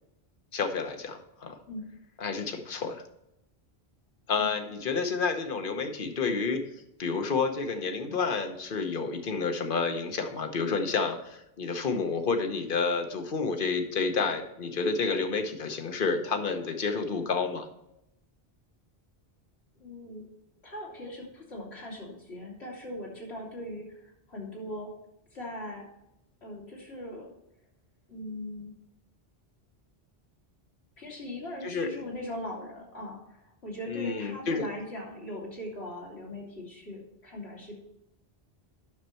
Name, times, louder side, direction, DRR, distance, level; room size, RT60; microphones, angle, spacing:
voice 1, 0.5-1.6 2.2-3.0 4.3-6.6 7.0-17.7 31.6-31.9 33.9-34.6, left 4 dB, 55° left, 7 dB, 1.1 m, -30 dB
voice 2, 19.8-20.3 20.6-24.9 25.3-25.8 26.4-27.3 28.1-28.7 31.0-37.7, left 1 dB, 80° left, -4 dB, 3.0 m, -40 dB
9.6 x 6.6 x 4.4 m, 0.84 s
omnidirectional pair, 1.1 m